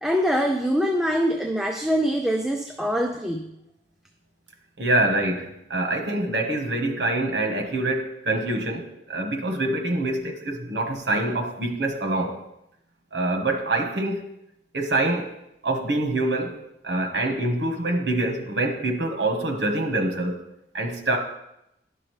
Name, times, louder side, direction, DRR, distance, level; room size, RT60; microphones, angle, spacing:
voice 1, 0.0-3.5, equal, 5° right, 2 dB, 0.4 m, -24 dB
voice 2, 4.8-12.4 13.1-14.3 14.7-15.3 15.6-16.6 16.8-20.4 20.7-21.2, right 2 dB, 75° right, 3 dB, 1.2 m, -25 dB
10.5 x 6.1 x 3.2 m, 0.84 s
head